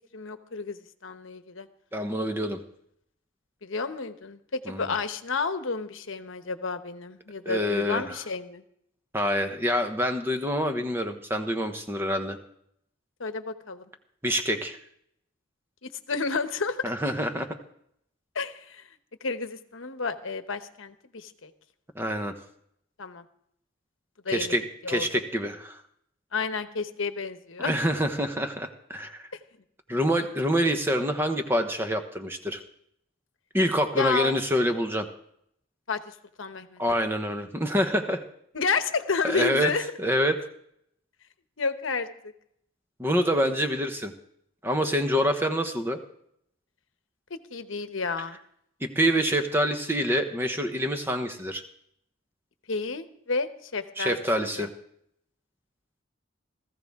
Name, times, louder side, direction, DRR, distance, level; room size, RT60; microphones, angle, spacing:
voice 1, 0.1-1.7 3.6-8.6 13.2-13.8 15.8-16.9 18.3-18.8 19.2-21.5 23.0-23.2 24.2-24.5 24.8-25.1 26.3-27.8 34.0-34.4 35.9-36.8 38.5-39.9 41.6-42.1 47.3-48.4 52.7-54.7, left 4 dB, 80° left, 9 dB, 1.0 m, -31 dB
voice 2, 1.9-2.6 4.7-4.9 7.4-8.2 9.1-12.4 14.2-14.8 16.8-17.5 21.9-22.4 24.3-25.8 27.6-29.3 29.9-32.6 33.5-35.1 36.8-38.2 39.2-39.7 40.0-40.4 43.0-44.1 44.6-46.0 48.8-51.6 54.0-54.7, equal, 10° right, 5 dB, 1.0 m, -26 dB
19.0 x 15.0 x 3.6 m, 0.70 s
head